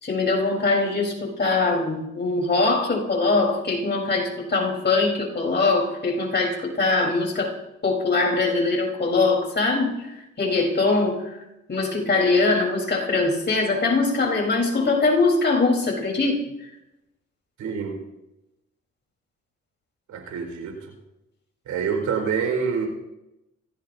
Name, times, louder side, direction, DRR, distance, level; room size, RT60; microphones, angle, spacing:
voice 1, 0.0-7.5 7.8-11.4 11.7-16.7, left 3 dB, 35° left, 0 dB, 4.3 m, -22 dB
voice 2, 17.6-18.0 20.1-20.8 21.7-22.9, right 6 dB, 75° right, 4 dB, 4.9 m, -26 dB
26.0 x 16.0 x 2.8 m, 0.92 s
cardioid pair, 90°, 30 cm